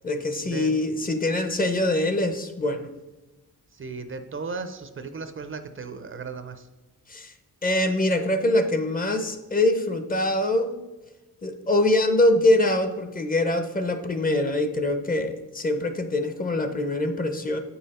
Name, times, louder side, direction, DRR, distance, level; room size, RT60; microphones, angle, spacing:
voice 1, 0.0-2.9 7.1-7.3 7.6-10.7 11.4-17.6, left 1 dB, 25° left, 8 dB, 0.7 m, -24 dB
voice 2, 3.7-6.7, right 4 dB, 35° right, 9 dB, 0.5 m, -36 dB
8.5 x 5.5 x 4.2 m, 1.1 s
wide cardioid pair, 130°, 35 cm